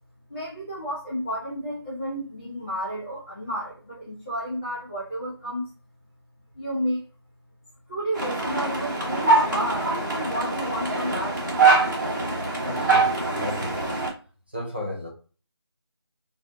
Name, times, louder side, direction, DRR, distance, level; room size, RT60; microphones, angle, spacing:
voice 1, 0.3-5.7 6.5-7.0 7.9-11.4, equal, 30° left, -9 dB, 1.0 m, -31 dB
sound 1, 8.1-14.1, right 3 dB, 45° right, 0.9 m, -23 dB
voice 2, 12.6-14.0 14.5-15.1, left 1 dB, 25° right, -2 dB, 0.4 m, -34 dB
2.5 x 2.4 x 3.4 m, 0.38 s
figure-of-eight pair, 165°, 14 cm